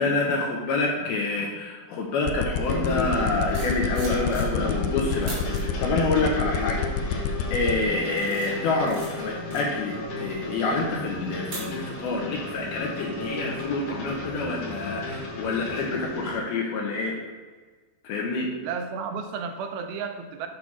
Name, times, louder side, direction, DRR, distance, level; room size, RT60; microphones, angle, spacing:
voice 1, 0.0-17.2 18.0-18.5, left 3 dB, 70° left, -1 dB, 2.5 m, -27 dB
sound 1, 2.3-7.8, left 11 dB, 90° left, 2.2 m, -27 dB
sound 2, 2.5-16.4, left 3 dB, 50° left, 1.9 m, -34 dB
sound 3, 3.3-4.8 5.2-5.6 6.3-6.6 7.1-7.5 7.9-12.2 12.5-12.7, right 2 dB, 55° right, 3.8 m, -41 dB
voice 2, 18.6-20.5, right 6 dB, 85° right, 6 dB, 2.8 m, -33 dB
8.8 x 3.5 x 6.0 m, 1.4 s
omnidirectional pair, 5.1 m